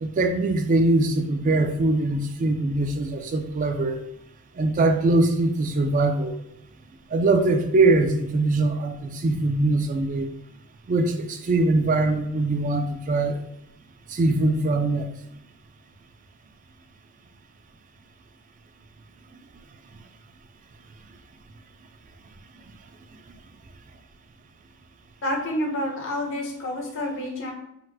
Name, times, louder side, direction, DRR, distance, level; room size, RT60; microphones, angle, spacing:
voice 1, 0.0-4.0 4.6-6.3 7.1-10.3 10.9-13.4 14.1-15.1, right 2 dB, 40° right, 7 dB, 0.3 m, -22 dB
voice 2, 25.2-27.5, left 1 dB, 65° left, 1 dB, 0.7 m, -28 dB
4.0 x 2.1 x 2.7 m, 0.82 s
head